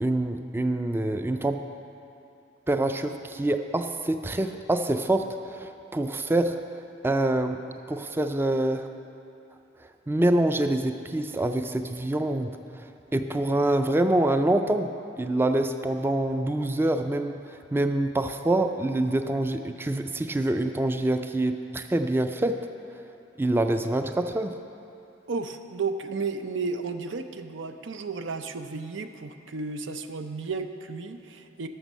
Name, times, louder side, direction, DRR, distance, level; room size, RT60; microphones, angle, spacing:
voice 1, 0.0-1.6 2.7-6.6 7.0-7.6 7.9-8.9 10.1-12.5 13.1-17.4 17.7-22.6 23.4-24.5, right 1 dB, 10° right, 7 dB, 0.3 m, -25 dB
voice 2, 25.3-31.7, right 4 dB, 90° right, 8 dB, 0.6 m, -33 dB
12.0 x 6.9 x 5.5 m, 2.7 s
head